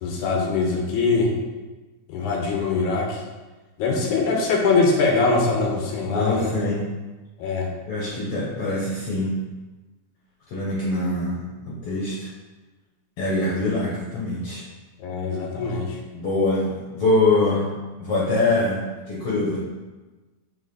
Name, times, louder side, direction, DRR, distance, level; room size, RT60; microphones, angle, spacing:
voice 1, 0.0-1.3 2.1-3.2 3.8-6.6 7.4-7.7 15.0-16.0, left 3 dB, 75° left, 0 dB, 2.2 m, -22 dB
voice 2, 6.1-6.9 7.9-9.3 10.5-12.3 13.2-14.7 16.1-17.7 18.0-18.8 19.1-19.6, left 2 dB, 60° left, -5 dB, 1.8 m, -24 dB
6.4 x 4.0 x 5.3 m, 1.2 s
omnidirectional pair, 3.6 m